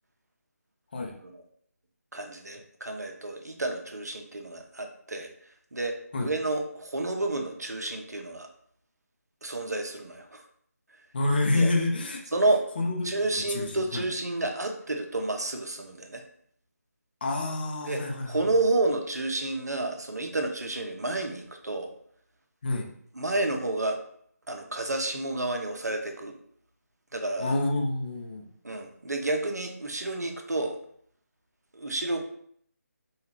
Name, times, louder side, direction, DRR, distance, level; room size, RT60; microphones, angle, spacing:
voice 1, 2.1-5.3 5.7-8.5 9.4-10.4 11.5-11.7 12.3-12.6 13.0-16.2 17.8-21.9 23.1-24.0 24.5-26.4 27.1-27.5 28.6-30.8 31.7-32.2, right 2 dB, 75° right, 4 dB, 0.7 m, -30 dB
voice 2, 11.1-12.2 12.8-13.1 13.5-14.0 17.2-18.4 22.6-22.9 27.4-28.5, left 2 dB, 35° left, 1 dB, 0.6 m, -28 dB
4.5 x 2.4 x 3.3 m, 0.64 s
figure-of-eight pair, 155°, 9 cm